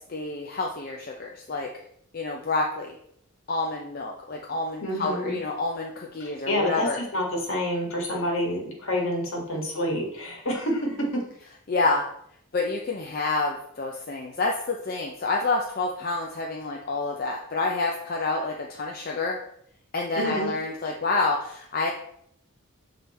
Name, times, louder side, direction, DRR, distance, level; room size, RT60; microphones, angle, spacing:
voice 1, 0.1-1.7 2.1-3.0 3.5-7.0 11.7-12.0 12.5-19.4 19.9-21.9, left 3 dB, 40° left, 0 dB, 0.6 m, -28 dB
voice 2, 4.8-5.4 6.2-11.0 20.2-20.5, left 1 dB, 65° left, -1 dB, 1.8 m, -28 dB
7.0 x 3.9 x 4.2 m, 0.70 s
head